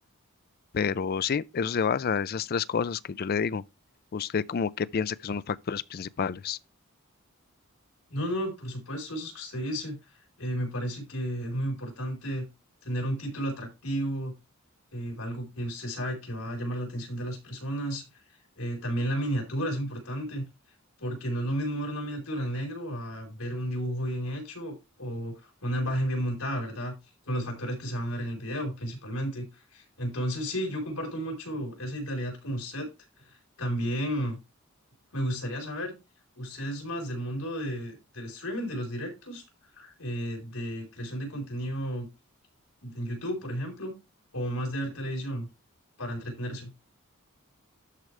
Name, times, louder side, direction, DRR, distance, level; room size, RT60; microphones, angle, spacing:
voice 1, 0.7-3.6 4.1-6.6, left 6 dB, 45° left, 0.4 m, -29 dB
voice 2, 8.1-10.0 10.4-12.5 12.8-14.3 14.9-18.0 18.6-20.5 21.0-26.9 27.3-32.9 33.2-34.4 35.1-35.9 36.3-39.4 39.7-42.1 42.8-43.9 44.3-45.5 46.0-46.7, equal, 90° left, 4.3 m, -33 dB
12.5 x 5.0 x 3.3 m
head